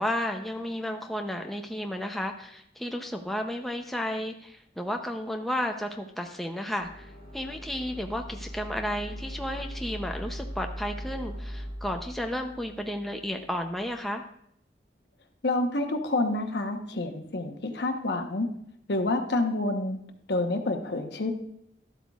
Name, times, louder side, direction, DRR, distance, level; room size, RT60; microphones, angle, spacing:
voice 1, 0.0-14.2, equal, ahead, 3 dB, 0.6 m, -33 dB
sound 1, 6.8-13.9, equal, 50° right, 2.6 m, -40 dB
voice 2, 15.4-18.5 18.9-20.0 20.3-21.3, left 2 dB, 70° left, 5 dB, 1.0 m, -28 dB
12.0 x 8.0 x 2.4 m, 0.71 s
head